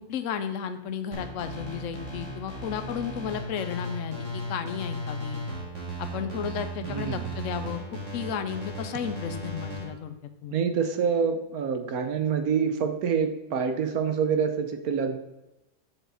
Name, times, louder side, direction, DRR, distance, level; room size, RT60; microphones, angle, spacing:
voice 1, 0.1-5.4 6.0-7.8 8.1-10.1 10.4-10.5, left 8 dB, 60° left, 9 dB, 1.0 m, -33 dB
sound 1, 1.1-9.8, right 1 dB, 50° right, 2.7 m, -36 dB
voice 2, 6.8-7.3 10.5-15.2, right 6 dB, 70° right, 8 dB, 1.3 m, -26 dB
7.2 x 7.1 x 4.0 m, 0.95 s
omnidirectional pair, 1.7 m